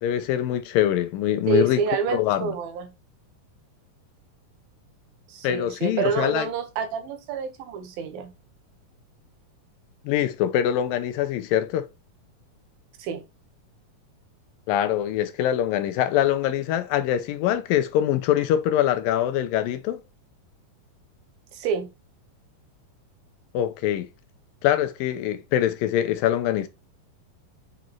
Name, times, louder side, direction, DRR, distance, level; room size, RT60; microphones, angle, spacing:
voice 1, 0.0-1.8 2.1-2.5 5.4-6.5 10.1-11.9 14.7-20.0 23.5-24.1 24.6-26.7, left 11 dB, 90° left, 2.5 m, -23 dB
voice 2, 1.5-2.9 5.3-8.3 13.0-13.2 21.5-21.9, right 5 dB, 90° right, 3.0 m, -28 dB
7.5 x 4.0 x 4.4 m
omnidirectional pair, 4.0 m